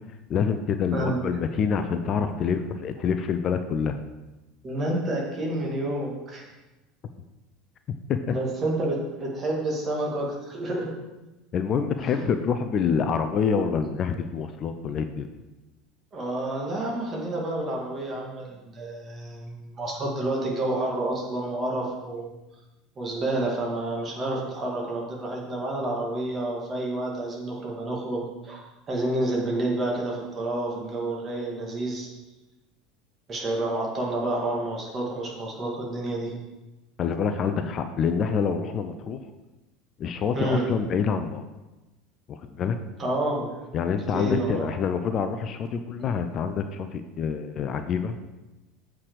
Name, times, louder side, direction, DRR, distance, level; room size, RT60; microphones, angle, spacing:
voice 1, 0.3-4.0 8.1-8.4 11.5-15.3 37.0-39.2 40.0-41.4 42.3-42.8 43.7-48.2, left 6 dB, 40° left, 8 dB, 0.6 m, -26 dB
voice 2, 4.6-6.5 8.3-10.9 12.0-12.2 16.1-22.3 23.0-28.6 28.9-32.1 33.3-36.4 40.3-40.7 43.0-43.6 44.1-44.7, right 1 dB, 30° right, -2 dB, 2.3 m, -29 dB
8.4 x 4.8 x 4.9 m, 1.1 s
figure-of-eight pair, 70°, 0 cm